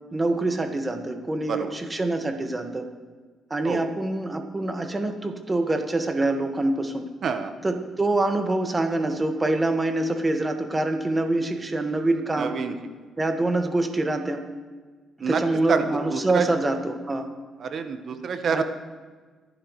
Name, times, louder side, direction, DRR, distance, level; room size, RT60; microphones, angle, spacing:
voice 1, 0.1-2.9 3.5-7.1 7.6-12.6 13.2-14.5 15.3-17.3 18.5-18.6, right 2 dB, 20° right, 5 dB, 1.7 m, -25 dB
voice 2, 7.2-7.5 12.4-12.7 15.2-15.4 15.7-15.8 16.1-16.5 17.6-18.6, right 6 dB, 55° right, 7 dB, 1.2 m, -27 dB
24.0 x 11.0 x 3.2 m, 1.4 s
cardioid pair, 90°, 0 cm